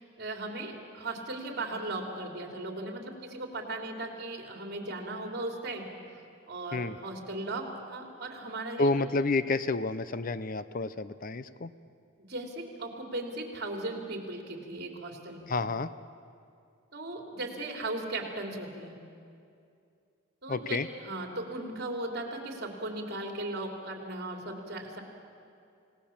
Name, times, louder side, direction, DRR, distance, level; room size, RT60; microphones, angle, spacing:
voice 1, 0.0-5.9 6.5-8.9 12.2-15.5 16.9-18.9 20.4-25.0, right 2 dB, 50° right, 2 dB, 3.3 m, -37 dB
voice 2, 8.8-11.7 15.5-15.9 20.5-20.9, left 3 dB, 40° left, 14 dB, 0.6 m, -29 dB
29.0 x 18.0 x 7.2 m, 2.5 s
head